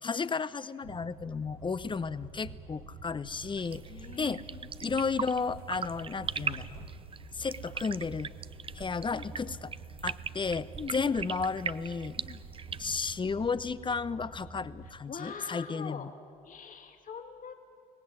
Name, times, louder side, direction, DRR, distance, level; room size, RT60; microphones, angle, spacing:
voice 1, 0.0-3.8 4.2-4.4 4.8-6.8 7.3-8.3 8.7-9.7 10.0-12.2 12.8-16.1, left 5 dB, 25° left, 16 dB, 0.8 m, -33 dB
sound 1, 0.8-14.9, right 4 dB, 90° right, 2.1 m, -47 dB
sound 2, 3.6-13.0, right 6 dB, 30° right, 0.6 m, -40 dB
voice 2, 3.9-4.4 9.1-9.6 10.8-11.1 12.2-12.4 15.1-16.1 16.4-17.5, left 6 dB, 45° left, 4 dB, 2.2 m, -43 dB
22.5 x 18.0 x 9.6 m, 2.3 s
hypercardioid pair, 65°, 19 cm